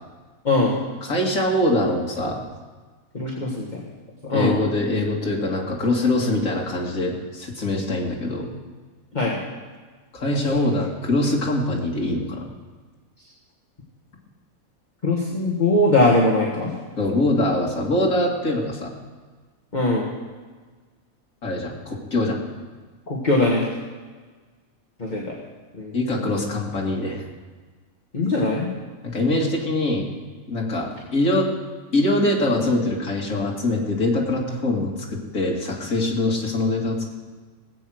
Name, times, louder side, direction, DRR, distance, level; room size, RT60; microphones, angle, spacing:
voice 1, 0.5-0.8 3.1-3.8 4.3-4.6 9.1-9.4 10.3-10.7 15.0-16.7 19.7-20.1 23.1-23.7 25.0-25.2 25.8-25.9 28.1-28.7, left 2 dB, 30° left, -3 dB, 1.8 m, -21 dB
voice 2, 1.0-2.4 4.3-8.5 10.1-12.5 17.0-18.9 21.4-22.4 25.9-27.2 29.1-30.1 30.5-31.5 31.9-37.1, left 1 dB, 65° left, -2 dB, 2.6 m, -23 dB
18.0 x 8.4 x 6.4 m, 1.4 s
omnidirectional pair, 1.5 m